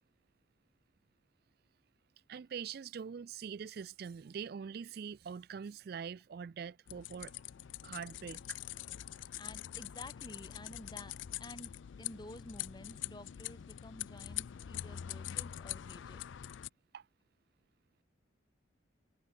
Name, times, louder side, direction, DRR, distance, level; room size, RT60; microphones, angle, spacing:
voice 1, 2.3-7.3 7.8-8.6 16.9-17.1, right 6 dB, 50° right, 0.3 m, -43 dB
sound 1, 6.9-16.7, left 12 dB, 70° left, 0.4 m, -44 dB
voice 2, 9.4-11.1 11.4-16.2, left 1 dB, 20° left, 2.1 m, -51 dB
head